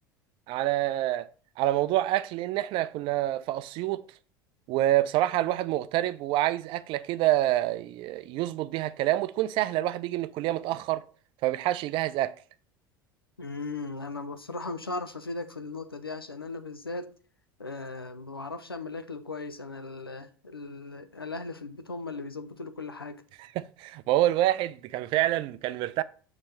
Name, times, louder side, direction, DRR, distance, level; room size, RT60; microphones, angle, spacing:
voice 1, 0.5-1.3 1.6-4.0 4.7-11.0 11.4-12.3 23.4-26.0, right 14 dB, 45° right, 0.4 m, -27 dB
voice 2, 13.4-17.1 17.6-23.2, left 3 dB, 90° left, 0.5 m, -37 dB
6.9 x 3.2 x 5.2 m
figure-of-eight pair, 70°, 12 cm